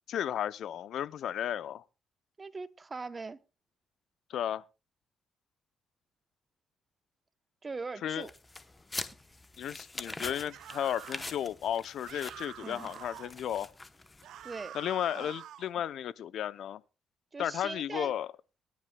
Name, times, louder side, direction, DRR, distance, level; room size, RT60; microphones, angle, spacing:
voice 1, 0.1-1.8 4.3-4.6 8.0-8.3 9.6-13.7 14.7-16.8 17.4-18.3, left 10 dB, 75° left, 0.5 m, -34 dB
voice 2, 2.4-3.4 7.6-8.3 12.6-12.9 14.4-14.8 15.1-15.3 17.3-18.1, right 4 dB, 30° right, 0.8 m, -40 dB
sound 1, 8.2-14.4, left 2 dB, 20° left, 0.8 m, -44 dB
sound 2, 10.5-11.3 12.0-13.3 14.2-15.7, right 11 dB, 75° right, 0.5 m, -47 dB
23.0 x 10.5 x 2.2 m
cardioid pair, 90°, 0 cm